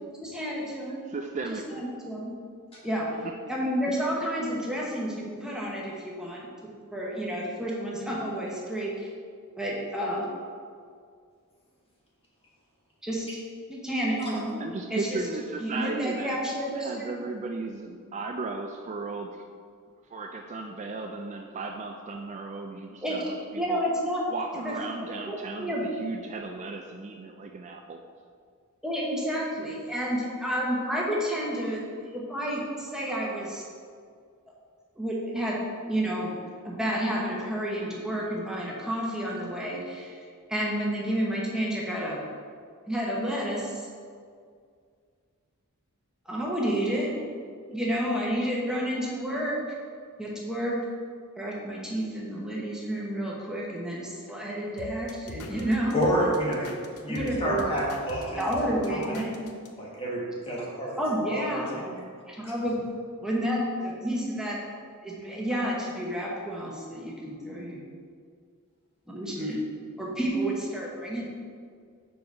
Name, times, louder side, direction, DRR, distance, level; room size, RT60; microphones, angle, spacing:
voice 1, 0.2-1.0 1.5-2.3 2.8-3.1 3.5-6.5 6.9-9.1 9.6-10.2 13.0-13.3 13.7-14.6 14.9-15.2 15.6-17.1 23.0-24.2 24.6-24.8 25.3-25.8 28.8-33.6 35.0-36.3 36.6-42.2 42.9-43.9 46.3-47.1 47.7-49.6 50.2-50.8 51.4-56.0 57.1-57.7 58.4-59.5 61.0-61.8 62.3-62.8 63.2-64.6 65.0-67.8 69.1-69.6 70.0-71.3, equal, 5° right, -4 dB, 0.9 m, -30 dB
voice 2, 1.1-1.8 14.6-16.4 16.7-19.4 20.1-23.8 24.3-28.0, right 3 dB, 30° right, 3 dB, 0.3 m, -36 dB
sound 1, 54.8-59.7, left 3 dB, 75° left, 0.7 m, -43 dB
voice 3, 55.9-56.7 57.0-59.1 59.8-61.0 61.3-61.9, equal, 25° left, -5 dB, 1.4 m, -29 dB
4.7 x 4.6 x 5.2 m, 2.1 s
head